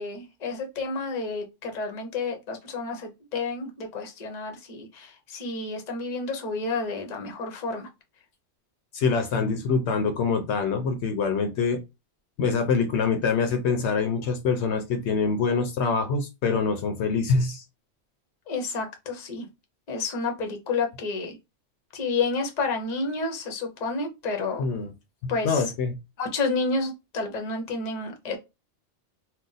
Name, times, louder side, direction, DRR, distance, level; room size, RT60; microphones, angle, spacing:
voice 1, 0.0-7.9 18.5-19.5 19.9-21.4 21.9-24.7 25.3-25.6 26.2-28.4, left 3 dB, 45° left, 0.8 m, -30 dB
voice 2, 8.9-11.8 12.4-17.6 24.6-24.9 25.2-25.9, left 5 dB, 75° left, 0.9 m, -25 dB
2.4 x 2.2 x 3.9 m
omnidirectional pair, 1.2 m